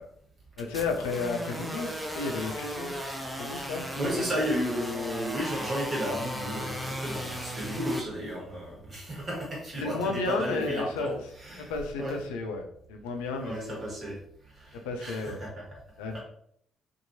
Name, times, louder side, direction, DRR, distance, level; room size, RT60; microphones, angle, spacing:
voice 1, 0.6-2.9 3.4-4.3 9.8-11.2 11.6-12.6 12.9-13.8 14.8-15.4 16.0-16.2, left 3 dB, 75° left, 3 dB, 0.4 m, -32 dB
sound 1, 0.6-8.0, equal, 10° right, 0.6 m, -36 dB
voice 2, 4.0-11.7 12.0-12.2 13.3-14.2 14.4-15.6 16.1-16.2, equal, 40° right, -4 dB, 1.5 m, -33 dB
2.8 x 2.5 x 2.7 m, 0.68 s
figure-of-eight pair, 45°, 0 cm